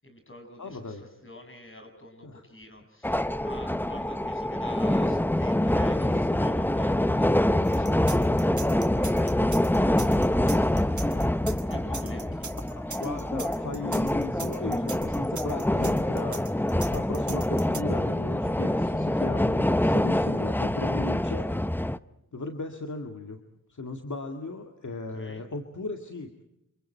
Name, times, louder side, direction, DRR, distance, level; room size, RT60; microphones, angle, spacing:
voice 1, 0.0-11.2 11.5-12.6 24.9-25.5, left 1 dB, 40° left, 6 dB, 7.2 m, -47 dB
voice 2, 0.6-1.0 2.2-2.4 11.1-11.3 12.8-21.6 22.3-23.4 23.7-26.4, left 3 dB, 65° left, 4 dB, 2.1 m, -37 dB
sound 1, 3.0-22.0, left 1 dB, 5° left, 0.7 m, -25 dB
sound 2, 7.6-17.8, right 4 dB, 65° right, 2.4 m, -40 dB
28.0 x 27.5 x 4.5 m, 0.86 s
wide cardioid pair, 60°, 32 cm